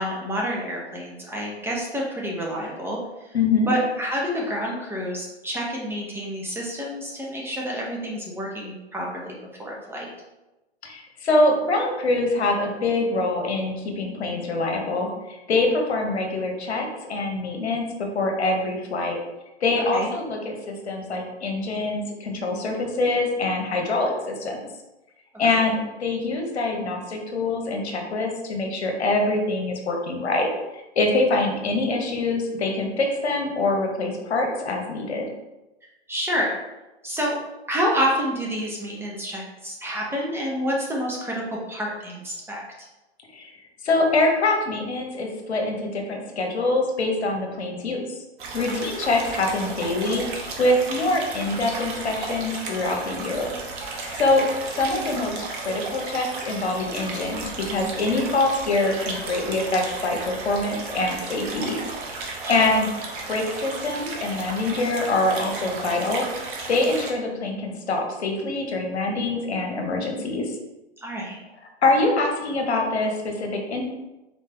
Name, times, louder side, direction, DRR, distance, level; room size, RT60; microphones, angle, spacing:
voice 1, 0.0-3.3 3.7-10.1 19.9-20.1 25.5-25.6 36.1-36.6 37.0-37.4 37.7-42.6 48.6-48.9 62.4-62.5 71.0-71.4, equal, 5° right, -3 dB, 0.7 m, -28 dB
voice 2, 3.3-3.7 10.8-19.2 19.6-24.6 25.4-30.5 30.7-35.3 43.3-43.5 43.8-48.0 48.5-50.2 50.6-53.5 53.9-54.5 54.7-61.8 62.5-62.9 63.3-66.3 66.7-70.5 71.8-73.8, left 2 dB, 75° left, 2 dB, 1.1 m, -24 dB
sound 1, 48.4-67.1, right 3 dB, 50° right, 1.0 m, -34 dB
3.9 x 3.2 x 3.4 m, 1.0 s
hypercardioid pair, 110°, 33 cm